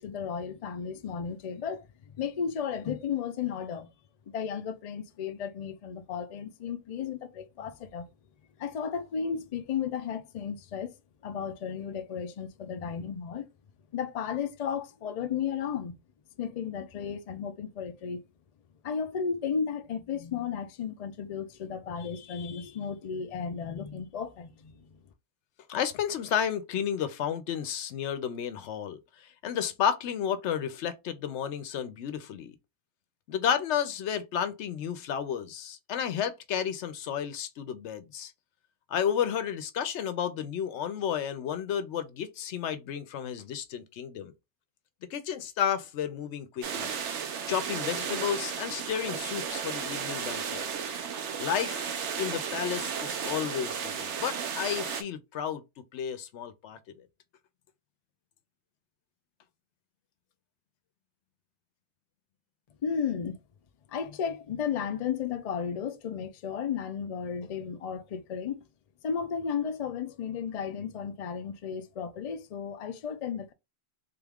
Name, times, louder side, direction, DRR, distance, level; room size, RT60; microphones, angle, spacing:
voice 1, 0.0-1.9 2.2-3.9 4.3-8.1 8.6-10.9 11.2-13.5 13.9-16.0 16.4-18.2 18.8-25.0 62.8-63.4 63.9-68.6 69.0-73.5, left 7 dB, 50° left, 0.4 m, -34 dB
voice 2, 25.7-32.6 33.3-38.3 38.9-44.3 45.1-46.9 47.5-50.7 51.4-57.1, left 8 dB, 85° left, 0.9 m, -32 dB
sound 1, 46.6-55.0, right 7 dB, 85° right, 1.0 m, -34 dB
3.8 x 2.3 x 3.4 m
omnidirectional pair, 1.2 m